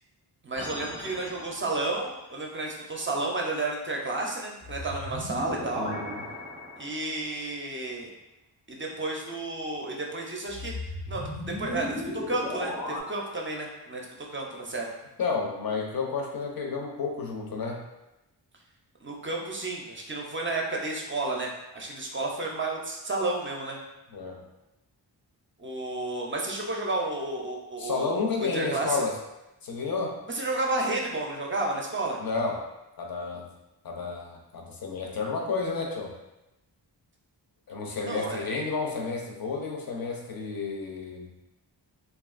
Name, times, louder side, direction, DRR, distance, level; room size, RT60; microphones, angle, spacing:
voice 1, 0.4-5.9 6.8-8.1 8.7-10.7 11.1-14.9 19.0-23.8 25.6-29.0 30.3-32.2 38.1-38.4, right 2 dB, 30° right, -1 dB, 0.4 m, -32 dB
sound 1, 0.5-1.9 4.6-7.3 10.5-13.0, left 1 dB, 85° left, 1.1 m, -36 dB
voice 2, 5.8-6.2 15.2-17.8 24.1-24.4 27.8-29.2 29.6-30.2 32.2-32.6 33.0-33.5 33.8-36.1 37.7-41.3, left 4 dB, 50° left, 0 dB, 0.6 m, -31 dB
2.7 x 2.4 x 2.4 m, 0.97 s
wide cardioid pair, 70°, 45 cm